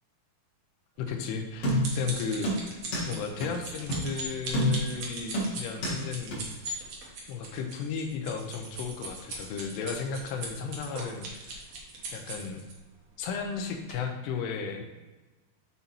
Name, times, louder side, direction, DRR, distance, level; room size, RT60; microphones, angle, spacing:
voice 1, 1.0-2.8 3.1-6.4 7.3-11.6 12.1-12.6 13.2-14.8, left 6 dB, 90° left, 4 dB, 2.9 m, -34 dB
sound 1, 1.1-12.7 13.4-13.6 13.9-14.0, right 3 dB, 85° right, 1.3 m, -40 dB
sound 2, 1.6-2.1 2.4-3.1 3.4-3.5 3.9-4.1 4.5-5.0 5.3-6.0 6.3-6.4, equal, 50° left, 2.0 m, -28 dB
7.5 x 4.0 x 4.2 m, 1.2 s
omnidirectional pair, 4.8 m